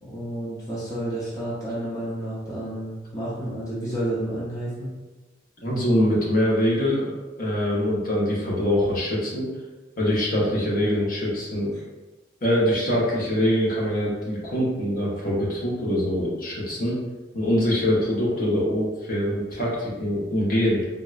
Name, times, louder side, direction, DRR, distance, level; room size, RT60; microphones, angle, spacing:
voice 1, 0.0-4.9, right 1 dB, 20° left, -8 dB, 0.6 m, -30 dB
voice 2, 5.6-9.5 10.0-11.7 12.4-17.0 17.3-20.8, equal, 55° left, -5 dB, 0.8 m, -24 dB
3.6 x 2.0 x 2.4 m, 1.2 s
head